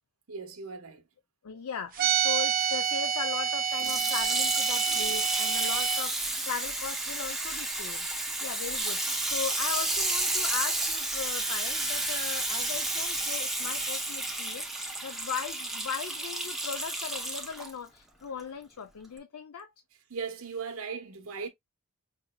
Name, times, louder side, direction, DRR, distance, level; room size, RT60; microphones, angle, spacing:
voice 1, 0.3-1.0 20.1-21.5, right 5 dB, 70° right, 1.0 m, -37 dB
voice 2, 1.4-19.7, left 6 dB, 85° left, 0.5 m, -38 dB
sound 1, 2.0-6.0, right 8 dB, 40° right, 0.6 m, -28 dB
Water tap faucet / Sink (filling or washing), 3.7-17.7 18.4-18.5, right 2 dB, ahead, 0.7 m, -31 dB
5.4 x 2.8 x 2.2 m
head